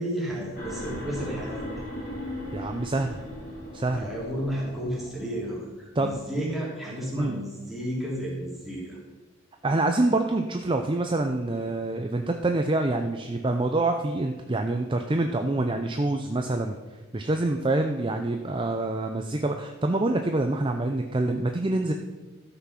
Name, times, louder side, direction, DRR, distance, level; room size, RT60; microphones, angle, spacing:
voice 1, 0.0-1.7 3.9-9.0, equal, ahead, -6 dB, 3.1 m, -32 dB
sound 1, 0.5-5.5, left 1 dB, 35° left, 3.6 m, -38 dB
voice 2, 2.5-3.2 3.7-4.1 6.0-6.1 7.1-7.4 9.6-16.8 17.1-21.9, right 2 dB, 25° right, 5 dB, 0.5 m, -26 dB
13.0 x 6.1 x 5.8 m, 1.2 s
head